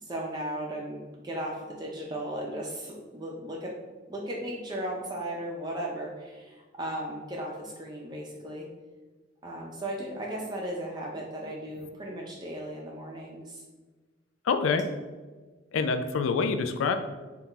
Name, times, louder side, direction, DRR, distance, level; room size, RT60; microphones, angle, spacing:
voice 1, 0.0-3.7 4.1-8.7 9.4-13.6, right 1 dB, 20° right, -2 dB, 0.4 m, -36 dB
voice 2, 14.5-14.8 15.7-16.9, left 5 dB, 85° left, 8 dB, 0.3 m, -26 dB
4.1 x 2.3 x 3.7 m, 1.3 s
head